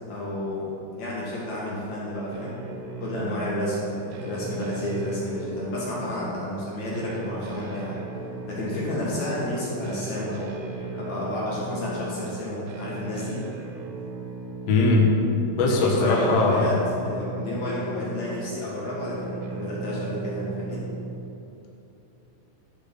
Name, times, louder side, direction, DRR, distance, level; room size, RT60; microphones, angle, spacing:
voice 1, 0.1-2.5 3.0-8.0 8.5-10.5 11.0-13.4 15.6-20.8, left 1 dB, 50° left, -6 dB, 2.4 m, -31 dB
sound 1, 2.3-21.2, right 3 dB, 70° right, 2.6 m, -37 dB
voice 2, 14.7-15.2 15.6-16.7, left 3 dB, 85° left, -2 dB, 1.4 m, -20 dB
12.0 x 6.9 x 6.0 m, 2.9 s
omnidirectional pair, 5.4 m